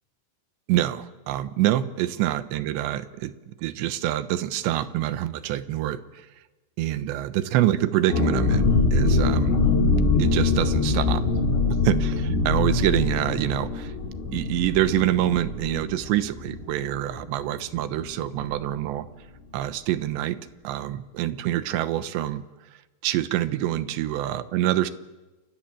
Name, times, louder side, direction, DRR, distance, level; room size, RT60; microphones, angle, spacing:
voice 1, 0.7-6.3 6.8-9.6 10.2-11.2 11.8-13.9 14.3-19.1 19.5-20.4 20.6-22.4 23.0-24.9, right 13 dB, 75° right, 13 dB, 3.2 m, -26 dB
sound 1, 8.1-17.5 17.8-17.9 18.2-18.5, left 3 dB, 85° left, 6.7 m, -23 dB
30.0 x 25.0 x 7.6 m, 1.1 s
omnidirectional pair, 5.4 m